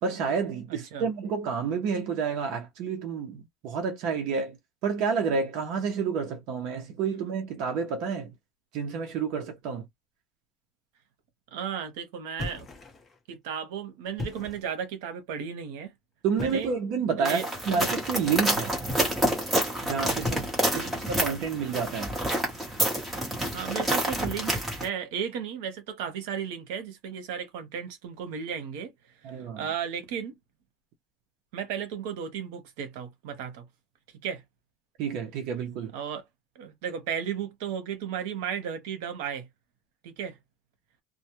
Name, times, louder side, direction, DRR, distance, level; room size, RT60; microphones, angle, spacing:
voice 1, 0.0-4.6 4.8-8.3 8.7-9.9 16.2-18.7 19.8-22.2 29.2-29.7 35.0-35.9, right 6 dB, 50° right, 0.6 m, -29 dB
voice 2, 0.7-1.0 11.5-12.7 13.3-15.9 16.4-16.7 17.2-17.5 20.7-20.9 23.5-28.9 29.3-30.3 31.5-33.7 34.2-34.4 35.9-36.2 36.6-39.5 40.0-40.4, right 7 dB, 85° right, 0.8 m, -34 dB
sound 1, 12.4-13.2 14.0-14.7 16.4-16.8 18.8-19.5 20.2-20.9, left 2 dB, 15° left, 0.6 m, -38 dB
sound 2, 17.3-24.9, right 1 dB, 5° right, 1.0 m, -28 dB
2.2 x 2.1 x 2.9 m
cardioid pair, 180°, 0 cm